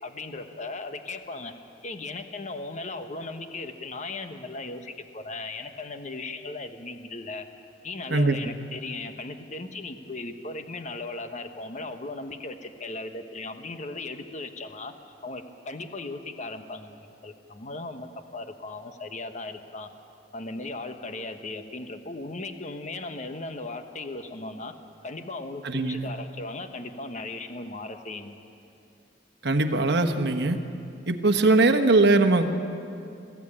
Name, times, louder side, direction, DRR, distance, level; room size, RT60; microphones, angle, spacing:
voice 1, 0.0-1.5 1.8-7.5 7.8-14.9 15.2-19.9 20.3-24.7 25.0-28.3, left 2 dB, 40° left, 7 dB, 1.1 m, -37 dB
voice 2, 25.6-26.1 29.4-30.6 31.1-32.6, right 2 dB, 65° right, 7 dB, 1.3 m, -21 dB
21.0 x 14.5 x 8.8 m, 2.6 s
head